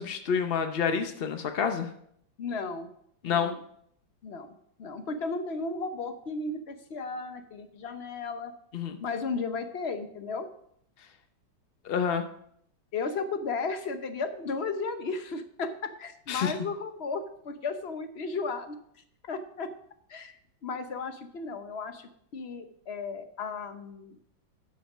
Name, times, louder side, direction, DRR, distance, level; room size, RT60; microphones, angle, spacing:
voice 1, 0.0-1.9 3.2-3.6 8.7-9.0 11.8-12.2 16.3-16.5, left 6 dB, 80° left, 7 dB, 0.5 m, -28 dB
voice 2, 2.4-2.9 3.2-3.6 4.2-4.5 4.8-8.5 9.0-10.5 12.9-18.8 19.3-19.7 20.1-20.3 20.6-24.2, left 4 dB, 50° left, 8 dB, 0.8 m, -34 dB
11.0 x 6.2 x 6.0 m, 0.69 s
omnidirectional pair, 2.1 m